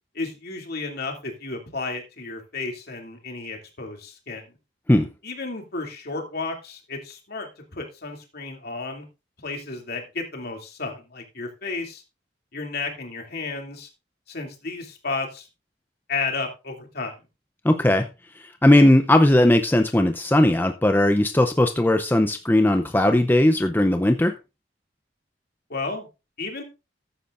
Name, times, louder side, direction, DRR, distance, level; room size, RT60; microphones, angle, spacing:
voice 1, 0.1-4.5 5.2-9.0 9.4-12.0 12.5-13.9 14.3-15.5 16.1-17.2 25.7-26.1 26.4-26.6, left 3 dB, 55° left, 2.7 m, -32 dB
voice 2, 17.6-18.1 18.4-24.3, left 1 dB, 10° left, 0.6 m, -18 dB
14.0 x 9.9 x 2.5 m
head